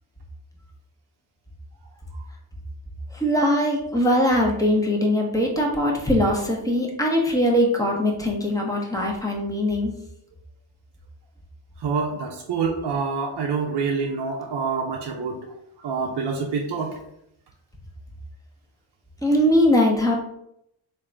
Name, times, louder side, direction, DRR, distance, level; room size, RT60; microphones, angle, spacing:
voice 1, 3.1-9.9 19.2-20.1, equal, 5° left, -1 dB, 1.1 m, -21 dB
voice 2, 11.8-15.4 15.8-16.9, right 5 dB, 55° right, 0 dB, 0.7 m, -26 dB
3.6 x 2.7 x 3.4 m, 0.78 s
cardioid pair, 55°, 49 cm